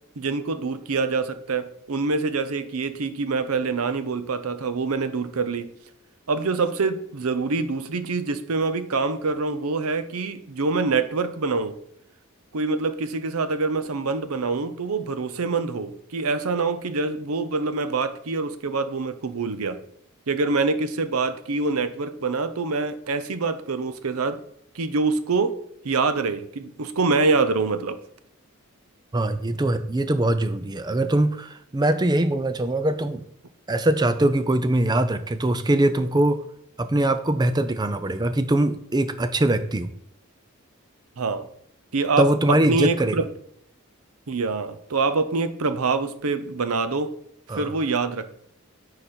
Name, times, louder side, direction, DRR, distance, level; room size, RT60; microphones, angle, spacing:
voice 1, 0.2-5.7 6.3-11.7 12.5-19.8 20.3-24.4 24.7-25.6 25.8-28.0 41.2-41.5 41.9-42.3 42.7-43.3 44.3-47.1 47.6-48.3, right 4 dB, 90° right, 11 dB, 0.7 m, -25 dB
voice 2, 29.1-33.3 33.7-36.4 36.8-39.9 42.2-43.2 47.5-47.8, right 1 dB, 20° right, 11 dB, 0.5 m, -22 dB
9.9 x 4.1 x 4.4 m, 0.69 s
head